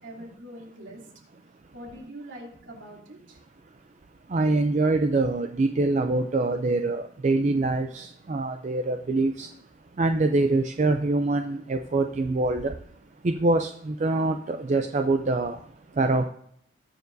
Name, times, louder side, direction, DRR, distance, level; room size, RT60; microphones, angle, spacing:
voice 1, 0.0-1.1 1.4-3.4, right 1 dB, 75° right, 2.8 m, -43 dB
voice 2, 4.3-9.6 9.9-12.8 13.2-16.3, right 2 dB, 40° right, 0.4 m, -25 dB
20.0 x 6.9 x 2.6 m
head